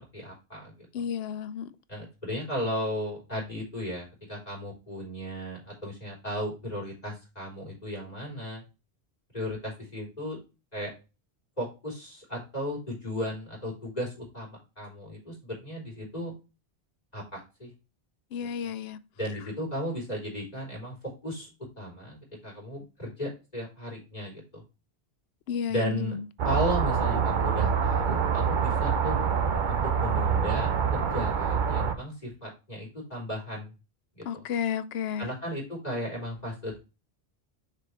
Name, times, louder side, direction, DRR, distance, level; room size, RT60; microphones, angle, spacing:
voice 1, 0.1-1.1 1.9-8.6 9.3-10.4 10.7-10.9 11.6-16.3 17.1-17.7 18.4-18.7 19.2-20.9 21.2-21.5 21.8-24.6 25.7-26.2 26.4-29.2 29.7-33.7 34.1-34.4 35.2-36.8, equal, 40° left, 3.9 m, -35 dB
voice 2, 0.9-1.7 18.3-19.0 25.5-26.2 34.3-35.3, left 8 dB, 75° left, 0.8 m, -32 dB
sound 1, 26.4-31.9, right 6 dB, 55° right, 0.8 m, -26 dB
6.8 x 4.6 x 3.2 m
omnidirectional pair, 1.1 m